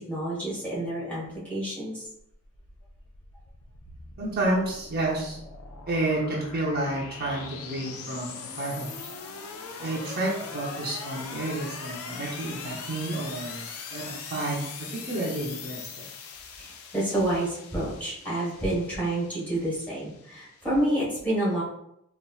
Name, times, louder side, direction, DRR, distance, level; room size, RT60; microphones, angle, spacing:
voice 1, 0.0-2.0 16.6-21.6, right 1 dB, 5° left, -7 dB, 1.1 m, -29 dB
sound 1, 2.3-20.9, left 5 dB, 75° left, 0.4 m, -41 dB
voice 2, 4.2-5.4 5.9-9.1 9.8-16.1, right 2 dB, 45° right, -4 dB, 0.6 m, -30 dB
4.2 x 2.4 x 2.3 m, 0.78 s
head